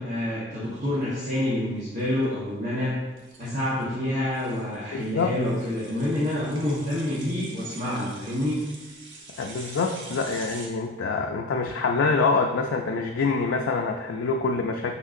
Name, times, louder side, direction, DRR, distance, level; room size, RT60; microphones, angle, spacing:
voice 1, 0.0-2.9 3.4-8.6, left 1 dB, 40° right, -8 dB, 1.2 m, -27 dB
sound 1, 0.7-10.7, right 3 dB, 80° right, 1.1 m, -45 dB
voice 2, 4.9-5.4 9.4-14.9, left 4 dB, 90° left, 3 dB, 0.4 m, -25 dB
6.2 x 5.7 x 2.6 m, 1.2 s
head